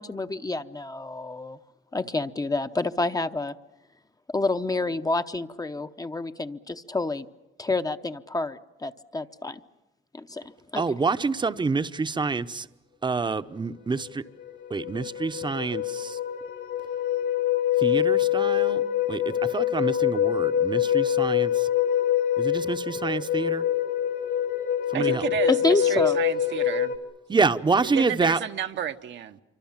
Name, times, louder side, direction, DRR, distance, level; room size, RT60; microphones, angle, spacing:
voice 1, 0.0-1.6 1.9-3.6 4.3-7.3 7.6-9.6 10.1-10.4 10.7-10.8 25.0-25.1 25.5-26.2, left 2 dB, 20° left, 0.8 m, -28 dB
voice 2, 10.8-12.7 13.0-14.2 14.7-16.2 17.8-18.8 19.1-21.7 22.4-23.6 24.9-25.2 27.3-28.4, right 4 dB, 25° right, 0.9 m, -27 dB
sound 1, 14.1-14.2 14.5-27.0, left 11 dB, 75° left, 3.5 m, -25 dB
voice 3, 24.9-26.9 27.8-29.4, right 9 dB, 65° right, 1.1 m, -31 dB
26.5 x 25.0 x 7.4 m
cardioid pair, 90°, 20 cm